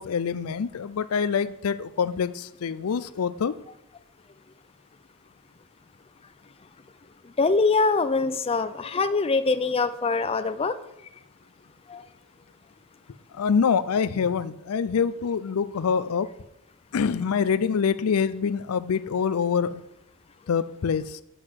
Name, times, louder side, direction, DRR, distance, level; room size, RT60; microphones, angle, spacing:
voice 1, 0.0-3.5 13.3-16.3 16.9-19.8 20.5-21.2, left 6 dB, 85° left, 16 dB, 0.4 m, -25 dB
voice 2, 7.4-10.7 11.9-12.0, left 4 dB, 25° left, 11 dB, 0.5 m, -23 dB
8.0 x 7.7 x 6.3 m, 0.85 s
head